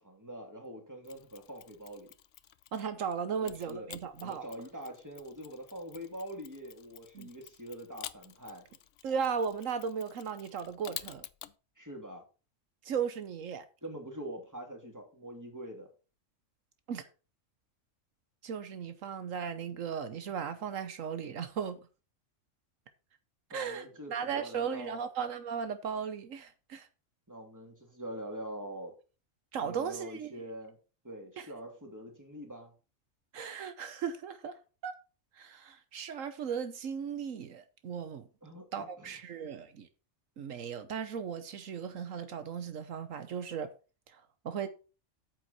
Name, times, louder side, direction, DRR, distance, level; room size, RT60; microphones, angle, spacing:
voice 1, 0.0-2.1 3.3-3.9 4.2-8.6 11.8-12.2 13.8-15.9 23.5-25.0 27.3-28.9 29.6-30.8 31.0-32.7 38.4-39.2, right 1 dB, 15° right, 2.8 m, -44 dB
Mechanisms, 1.0-3.0 3.5-11.5, left 11 dB, 70° left, 0.9 m, -50 dB
voice 2, 2.7-4.4 7.1-7.3 9.0-11.2 12.8-13.6 16.9-17.0 18.4-21.8 23.5-26.9 29.5-30.3 31.4-31.5 33.3-34.6 34.8-34.9 35.3-38.3 38.7-39.9 40.4-43.7 44.1-44.7, right 7 dB, 80° right, 1.3 m, -36 dB
9.2 x 7.6 x 4.2 m
omnidirectional pair, 1.3 m